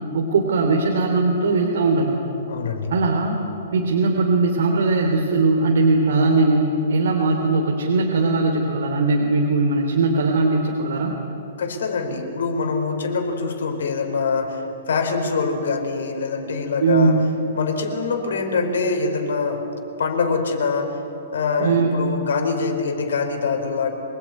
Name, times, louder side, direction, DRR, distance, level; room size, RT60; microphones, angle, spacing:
voice 1, 0.1-2.2 2.9-3.3 3.7-11.1 16.8-17.2 21.6-22.0, right 3 dB, 65° right, 0 dB, 3.3 m, -19 dB
voice 2, 2.5-2.9 11.6-17.2 17.5-19.6 20.0-21.0 21.3-23.9, left 4 dB, 85° left, 5 dB, 4.6 m, -24 dB
26.0 x 20.5 x 9.7 m, 3.0 s
hypercardioid pair, 180°, 0 cm